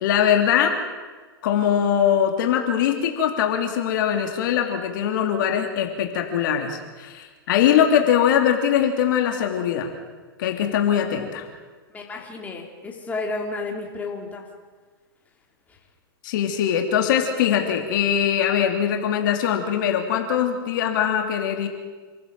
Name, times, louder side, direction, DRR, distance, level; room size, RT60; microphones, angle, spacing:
voice 1, 0.0-0.8 1.4-9.9 10.4-11.5 16.2-21.7, left 9 dB, 60° left, 3 dB, 2.9 m, -22 dB
voice 2, 11.9-14.5 15.7-15.8, left 3 dB, 10° left, 0 dB, 3.4 m, -32 dB
27.5 x 15.0 x 7.6 m, 1.4 s
hypercardioid pair, 130°, 12 cm